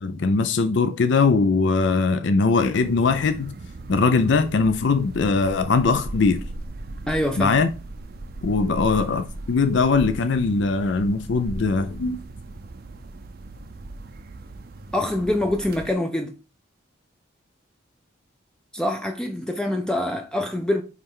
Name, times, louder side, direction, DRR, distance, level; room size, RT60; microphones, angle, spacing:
voice 1, 0.0-3.5 3.9-6.4 7.4-7.7 8.4-12.2, left 4 dB, 65° left, 0.4 m, -21 dB
sound 1, 2.7-15.9, right 2 dB, 50° right, 0.5 m, -38 dB
voice 2, 7.1-7.6 14.9-16.4 18.7-20.8, left 1 dB, 5° left, 0.4 m, -25 dB
9.2 x 3.3 x 3.7 m
head